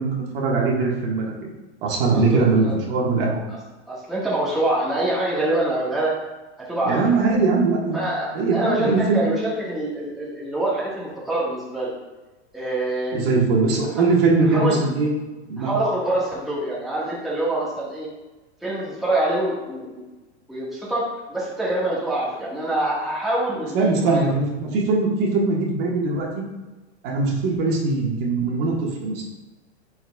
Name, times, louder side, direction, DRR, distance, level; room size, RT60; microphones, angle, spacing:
voice 1, 0.0-1.5 1.8-3.4 6.9-8.0 8.3-9.2 13.1-15.1 15.5-15.7 23.7-26.4 27.0-29.2, right 3 dB, 55° right, -2 dB, 1.6 m, -21 dB
voice 2, 1.8-2.7 3.5-3.6 3.9-6.1 6.6-7.2 7.9-11.9 12.5-13.2 14.5-14.8 15.6-18.1 18.6-20.0 20.5-21.0 21.3-24.4, right 1 dB, ahead, -7 dB, 1.5 m, -25 dB
9.5 x 4.6 x 2.3 m, 1.1 s
supercardioid pair, 140°, 34 cm